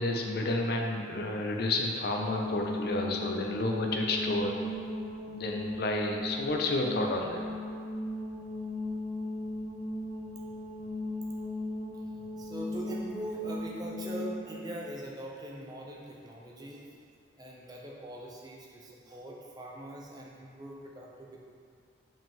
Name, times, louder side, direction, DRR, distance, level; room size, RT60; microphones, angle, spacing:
voice 1, 0.0-4.6 5.2-7.4, left 2 dB, 55° left, 1 dB, 0.6 m, -30 dB
sound 1, 2.2-14.5, left 1 dB, 75° left, 1.2 m, -37 dB
voice 2, 12.3-16.8 17.4-21.4, right 1 dB, 20° right, -3 dB, 0.7 m, -42 dB
5.3 x 5.2 x 3.6 m, 2.3 s
head